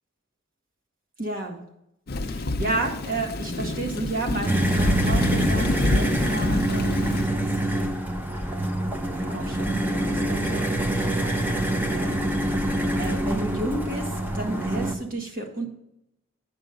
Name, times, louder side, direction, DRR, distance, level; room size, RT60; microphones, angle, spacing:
voice 1, 1.2-1.6 2.3-7.6 8.4-8.5 9.2-12.5 13.0-15.7, right 2 dB, 45° right, 2 dB, 1.6 m, -32 dB
Thunder / Rain, 2.1-7.3, left 2 dB, 50° left, 0.6 m, -27 dB
sound 1, 4.5-15.0, right 1 dB, 10° right, 0.7 m, -25 dB
8.4 x 5.8 x 5.1 m, 0.81 s
head